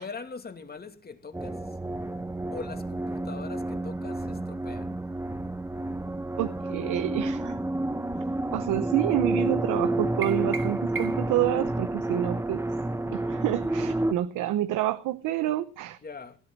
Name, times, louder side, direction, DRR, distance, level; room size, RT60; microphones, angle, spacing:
voice 1, 0.0-1.6 2.5-4.8 16.0-16.4, left 4 dB, 30° left, 2.6 m, -41 dB
sound 1, 1.3-14.1, right 2 dB, 10° right, 0.9 m, -30 dB
voice 2, 6.4-7.6 8.5-12.6 13.1-16.0, right 14 dB, 90° right, 1.0 m, -28 dB
sound 2, 10.2-11.4, right 6 dB, 40° right, 3.0 m, -37 dB
18.0 x 11.0 x 6.1 m
cardioid pair, 90°, 30 cm